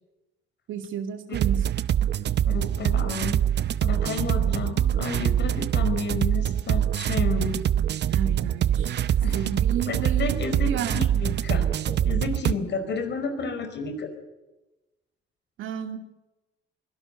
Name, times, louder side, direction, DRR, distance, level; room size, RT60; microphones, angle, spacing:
voice 1, 0.7-1.7 8.1-9.0 9.3-11.1 15.6-16.0, right 8 dB, 80° right, 6 dB, 2.6 m, -32 dB
sound 1, 1.3-12.5, right 10 dB, 60° right, 0.8 m, -24 dB
voice 2, 2.5-3.4 3.8-7.6 9.2-9.4 9.9-14.1, left 4 dB, 60° left, 8 dB, 4.9 m, -31 dB
23.5 x 17.0 x 8.1 m, 1.0 s
cardioid pair, 90°, 20 cm